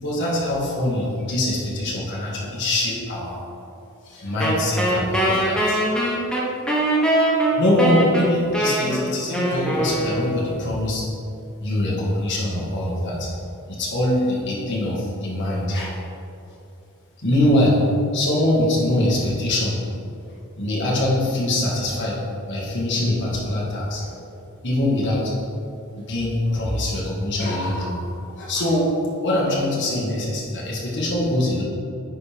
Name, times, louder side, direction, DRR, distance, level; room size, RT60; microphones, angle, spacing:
voice 1, 0.0-3.4 4.0-5.8 7.5-11.0 11.6-13.3 13.7-16.0 17.2-19.8 20.6-24.1 24.6-25.3 25.9-31.6, left 1 dB, 55° left, -5 dB, 1.7 m, -23 dB
Wind instrument woodwind instrument, 4.4-10.7, right 1 dB, 5° left, 0.9 m, -22 dB
9.7 x 4.4 x 3.5 m, 2.7 s
head